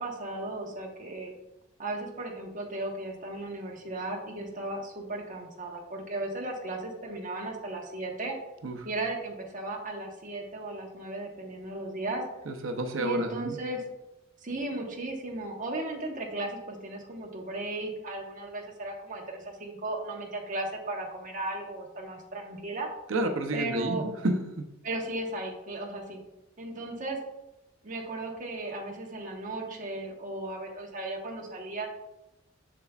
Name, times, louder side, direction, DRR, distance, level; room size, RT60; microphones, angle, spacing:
voice 1, 0.0-1.3 1.8-8.3 8.8-12.2 13.0-13.8 14.4-22.9 23.5-24.0 24.8-26.2 26.6-27.2 27.8-31.9, right 2 dB, 40° right, 0 dB, 1.2 m, -36 dB
voice 2, 12.5-13.6 23.1-24.7, right 1 dB, 80° right, 5 dB, 0.7 m, -30 dB
7.3 x 6.7 x 2.4 m, 0.95 s
head